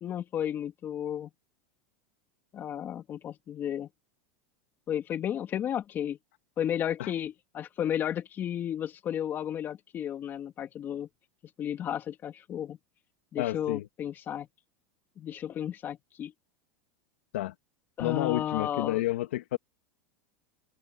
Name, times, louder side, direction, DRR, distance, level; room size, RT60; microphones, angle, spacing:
voice 1, 0.0-1.3 2.5-3.9 4.9-6.2 6.6-11.1 11.6-12.8 13.3-14.5 15.2-16.3 18.0-19.0, left 10 dB, 30° left, 2.6 m, -33 dB
voice 2, 13.4-13.9 17.3-17.5 18.0-19.6, left 16 dB, 80° left, 2.0 m, -30 dB
open air
supercardioid pair, 130°, 6 cm